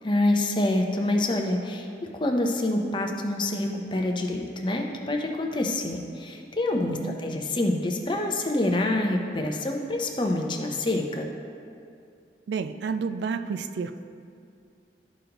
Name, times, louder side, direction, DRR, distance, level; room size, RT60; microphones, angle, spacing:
voice 1, 0.0-1.9 2.1-11.3, left 1 dB, 25° left, 2 dB, 0.7 m, -26 dB
voice 2, 12.5-14.1, right 5 dB, 70° right, 10 dB, 0.3 m, -30 dB
13.0 x 5.2 x 2.9 m, 2.4 s
head